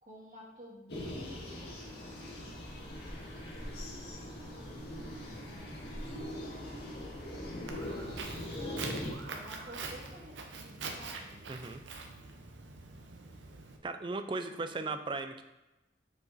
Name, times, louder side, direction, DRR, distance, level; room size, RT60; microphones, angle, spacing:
voice 1, 0.0-2.2 4.3-5.7 6.4-6.8 7.8-11.4 14.4-15.0, equal, 45° right, -4 dB, 1.9 m, -53 dB
sound 1, 0.9-9.1, left 1 dB, 60° left, 1.9 m, -41 dB
Walk footsteps, 7.7-13.8, right 4 dB, 90° right, 0.8 m, -44 dB
voice 2, 11.5-11.8 13.8-15.4, right 3 dB, 25° right, 8 dB, 0.4 m, -37 dB
6.8 x 5.0 x 4.0 m, 1.0 s
head